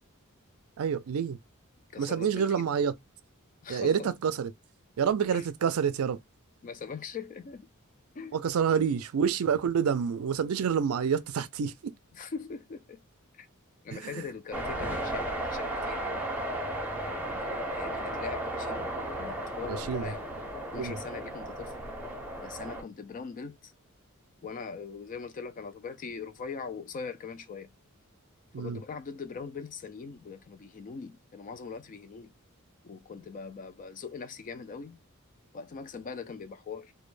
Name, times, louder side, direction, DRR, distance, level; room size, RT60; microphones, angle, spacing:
voice 1, 0.8-1.4 2.0-2.9 3.7-4.5 5.0-6.2 8.3-11.9 13.9-14.3 19.7-20.1 20.7-21.0 28.5-28.8, right 7 dB, 75° right, 0.4 m, -28 dB
voice 2, 1.9-2.7 3.6-4.1 5.3-5.5 6.6-7.7 8.1-8.4 8.7-8.9 12.1-13.0 13.3-13.5 13.8-16.3 17.0-20.2 20.7-21.8 22.4-23.7 24.4-27.7 28.6-32.3 32.8-35.0 35.5-36.9, left 5 dB, 40° left, 0.3 m, -41 dB
sound 1, 14.5-22.8, right 1 dB, 5° right, 0.6 m, -34 dB
2.2 x 2.1 x 3.1 m
head